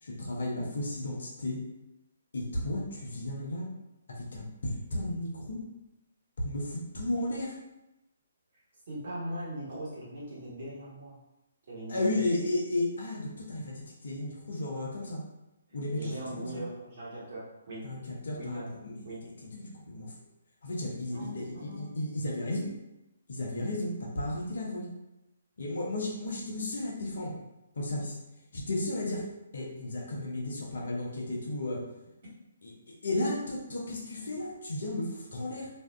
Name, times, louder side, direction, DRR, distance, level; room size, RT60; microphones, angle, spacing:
voice 1, 0.0-1.6 2.3-3.7 4.1-5.6 6.4-7.6 11.9-15.2 15.7-16.1 16.5-16.6 17.8-19.0 19.4-20.1 20.6-22.7 23.3-24.9 25.6-27.3 27.7-28.2 28.5-29.2 29.5-31.8 32.6-35.7, left 1 dB, 60° left, -2 dB, 0.6 m, -34 dB
voice 2, 8.9-11.2 11.7-12.0 15.9-17.9 18.4-18.7 19.0-19.2 21.1-21.9, right 1 dB, 50° right, -8 dB, 1.2 m, -40 dB
2.5 x 2.2 x 2.2 m, 0.93 s
figure-of-eight pair, 130°, 0 cm